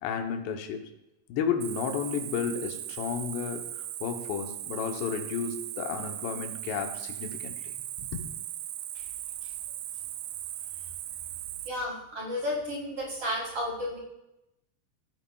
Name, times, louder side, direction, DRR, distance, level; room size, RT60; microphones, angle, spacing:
voice 1, 0.0-0.9 1.3-7.7 8.0-8.2, left 7 dB, 85° left, 5 dB, 3.0 m, -32 dB
Cricket, 1.6-11.7, right 12 dB, 85° right, 2.8 m, -38 dB
voice 2, 11.6-14.0, left 1 dB, 45° right, -4 dB, 2.2 m, -33 dB
17.0 x 8.4 x 2.3 m, 0.90 s
omnidirectional pair, 4.8 m